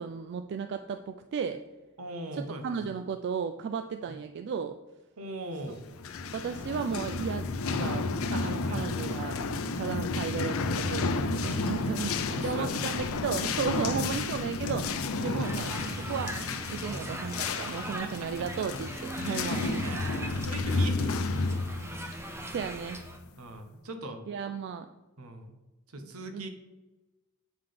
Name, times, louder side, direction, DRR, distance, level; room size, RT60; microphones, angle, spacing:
voice 1, 0.0-1.6 2.3-4.8 6.3-9.4 9.8-16.3 16.7-19.9 22.4-23.0 24.3-24.9 26.0-26.4, right 6 dB, 50° right, 7 dB, 0.3 m, -35 dB
voice 2, 2.0-2.8 4.1-4.2 5.2-5.9 8.7-8.9 12.3-13.0 13.8-14.1 15.2-15.6 16.9-17.1 17.8-18.5 19.2-21.6 23.4-24.2 25.2-25.5 25.9-26.5, right 1 dB, 75° right, 7 dB, 0.9 m, -40 dB
sound 1, 5.9-23.3, left 3 dB, 65° left, 0.5 m, -32 dB
sound 2, 15.4-23.2, right 1 dB, 10° right, 0.6 m, -40 dB
7.3 x 3.8 x 5.0 m, 1.1 s
head